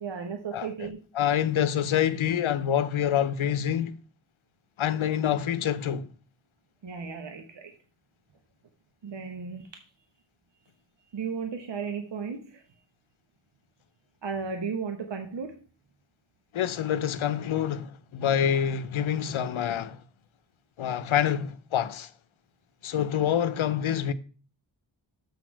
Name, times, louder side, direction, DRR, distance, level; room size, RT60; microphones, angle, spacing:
voice 1, 0.0-1.0 6.8-7.7 9.0-9.7 11.0-12.6 14.2-15.6, right 5 dB, 65° right, 1.0 m, -35 dB
voice 2, 1.1-4.0 4.8-6.1 16.5-20.0 20.8-22.1 22.8-24.1, left 9 dB, 85° left, 0.7 m, -26 dB
6.9 x 6.3 x 4.5 m
wide cardioid pair, 115°, 47 cm